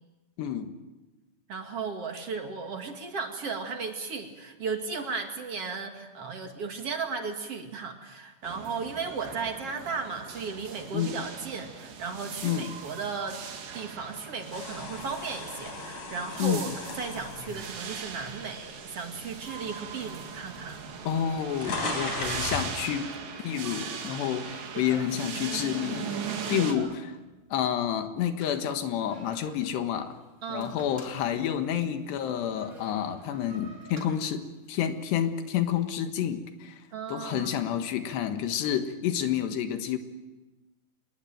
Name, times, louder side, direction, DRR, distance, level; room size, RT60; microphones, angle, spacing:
voice 1, 0.4-0.7 10.9-11.1 12.4-12.7 16.4-16.7 21.1-23.2 23.4-26.1 26.5-27.0 27.5-30.2 30.5-36.8 37.1-40.0, left 9 dB, 80° left, 7 dB, 3.6 m, -29 dB
voice 2, 1.5-13.4 13.7-16.7 17.0-20.8 24.7-25.1 26.4-26.9 30.4-30.8 36.9-37.6, right 5 dB, 45° right, 4 dB, 2.5 m, -35 dB
sound 1, 8.4-26.7, right 6 dB, 85° right, 4.7 m, -39 dB
sound 2, 14.5-18.8 19.3-19.5 20.4-20.5 20.7-22.7, left 3 dB, 45° left, 5.0 m, -37 dB
sound 3, 18.7-35.7, right 1 dB, 15° right, 6.1 m, -53 dB
26.5 x 21.0 x 9.2 m, 1.1 s
omnidirectional pair, 4.8 m